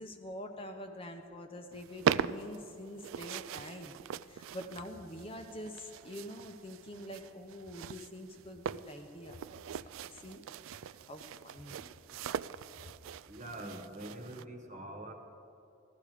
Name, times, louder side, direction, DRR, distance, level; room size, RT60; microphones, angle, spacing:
voice 1, 0.0-9.4 10.1-10.4 10.7-12.3, left 1 dB, 25° left, 4 dB, 0.8 m, -46 dB
sound 1, 1.7-14.4, right 8 dB, 80° right, 0.3 m, -40 dB
voice 2, 13.2-15.1, right 1 dB, 35° right, 4 dB, 1.3 m, -44 dB
16.0 x 13.5 x 5.0 m, 2.6 s
head